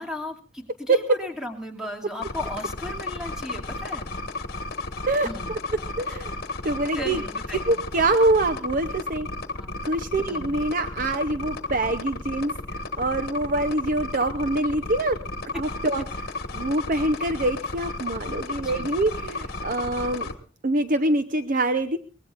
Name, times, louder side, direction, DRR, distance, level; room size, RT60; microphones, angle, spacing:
voice 1, 0.0-4.1 5.2-5.5 6.9-7.8 9.6-9.9 10.3-10.5 18.6-19.0, left 1 dB, 5° right, 1 dB, 2.5 m, -36 dB
sound 1, 2.2-20.3, left 2 dB, 50° left, 1.5 m, -33 dB
voice 2, 6.0-6.3 6.6-7.2 7.6-9.3 9.8-15.2 15.5-16.0 16.5-20.3 20.6-22.0, right 2 dB, 40° right, 9 dB, 0.7 m, -25 dB
23.0 x 19.5 x 2.5 m, 0.39 s
head